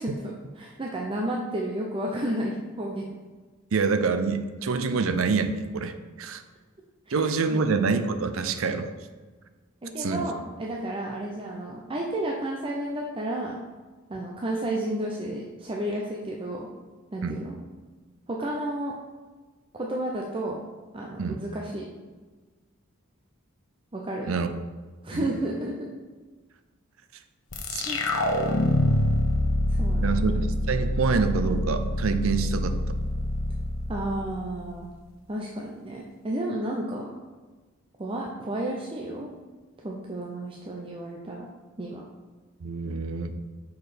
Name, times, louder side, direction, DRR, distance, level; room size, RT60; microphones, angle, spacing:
voice 1, 0.0-3.0 7.1-7.7 9.8-13.6 14.1-16.7 17.1-17.5 18.3-18.9 19.7-20.6 20.9-21.8 23.9-24.3 25.0-25.9 27.8-28.0 29.7-30.4 33.9-34.9 35.3-37.1 38.0-39.3 39.8-41.5 41.8-42.1, right 1 dB, 25° right, -1 dB, 0.6 m, -32 dB
voice 2, 3.7-6.4 7.1-8.9 10.0-10.2 17.2-17.4 21.2-21.4 24.3-24.5 25.1-25.2 27.7-27.8 30.0-33.0 42.6-43.4, right 4 dB, 70° right, 9 dB, 0.6 m, -26 dB
sound 1, 27.5-34.8, left 1 dB, 75° left, 1.0 m, -26 dB
6.0 x 4.7 x 4.9 m, 1.3 s
head